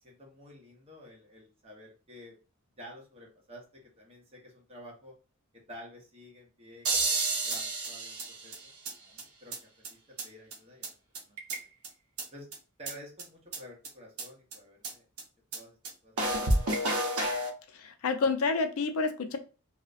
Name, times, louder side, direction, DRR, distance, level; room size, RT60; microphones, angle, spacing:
voice 1, 0.0-2.3 2.8-5.1 5.7-6.9 7.4-8.2 8.4-10.9 11.2-11.4 12.3-12.5 12.8-15.0 15.5-15.8 16.0-16.1, equal, 25° right, -1 dB, 0.7 m, -51 dB
sound 1, 6.8-8.9 9.2-9.3 9.5-9.6 9.8-9.9 10.2-10.3 10.5-10.6 10.8-10.9 11.1-11.9 12.2-12.3 12.5-12.6 12.9-13.0 13.2-13.3 13.5-13.6 13.8-13.9 14.2-14.3 14.5-14.6 14.8-14.9 15.2-15.3 15.5-15.6 15.8-15.9 16.2-17.5, right 2 dB, 75° right, 0.6 m, -30 dB
voice 2, 17.7-19.4, left 4 dB, 70° left, 8 dB, 0.4 m, -29 dB
2.5 x 2.1 x 2.4 m, 0.35 s
head